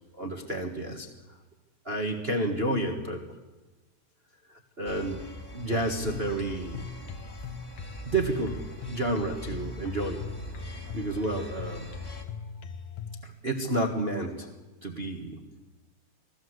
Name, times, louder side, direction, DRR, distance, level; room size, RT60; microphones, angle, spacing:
voice 1, 0.1-1.1 1.8-3.2 4.5-5.2 5.5-6.9 8.0-8.6 8.9-10.2 10.9-11.9 13.2-14.5 14.8-15.4, right 2 dB, 35° right, 3 dB, 1.0 m, -30 dB
sound 1, 4.8-12.2, equal, 10° left, 1.8 m, -43 dB
sound 2, 5.7-13.2, left 6 dB, 60° left, 2.6 m, -41 dB
25.5 x 16.5 x 8.1 m, 1.1 s
omnidirectional pair, 3.7 m